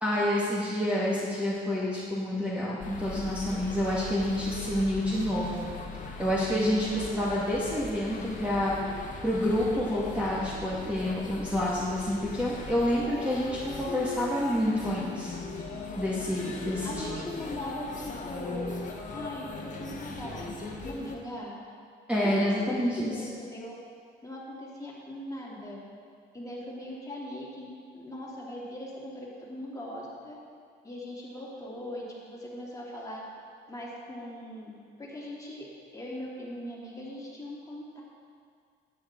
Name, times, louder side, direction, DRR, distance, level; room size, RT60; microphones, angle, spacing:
voice 1, 0.0-5.7 6.2-15.3 16.0-17.2 22.1-23.1, left 1 dB, 5° right, -7 dB, 1.9 m, -28 dB
sound 1, 2.8-21.2, left 3 dB, 40° left, 1.6 m, -39 dB
voice 2, 16.6-18.7 19.1-21.6 22.2-23.8 24.2-25.8 26.3-30.4 30.8-33.2 33.7-34.7 35.0-35.7 35.9-38.0, left 1 dB, 15° left, -5 dB, 3.0 m, -40 dB
12.5 x 9.3 x 3.9 m, 2.1 s
cardioid pair, 90°, 20 cm